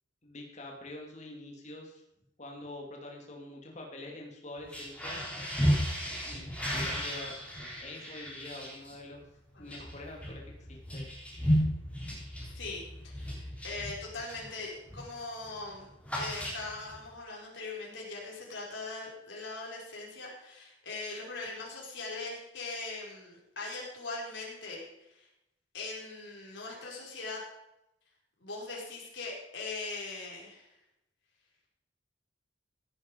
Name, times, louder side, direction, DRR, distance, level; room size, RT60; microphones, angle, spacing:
voice 1, 0.2-2.0 2.4-5.2 6.2-9.2 9.6-11.1 11.5-11.7 12.1-12.2, left 2 dB, 40° left, 0 dB, 2.6 m, -46 dB
sound 1, 4.6-14.5 14.9-15.2 15.4-17.0, equal, 5° left, 4.0 m, -34 dB
voice 2, 12.5-15.9 16.2-25.3 25.7-27.4 28.4-30.7, left 3 dB, 80° left, -3 dB, 4.8 m, -41 dB
16.0 x 9.9 x 5.3 m, 0.86 s
head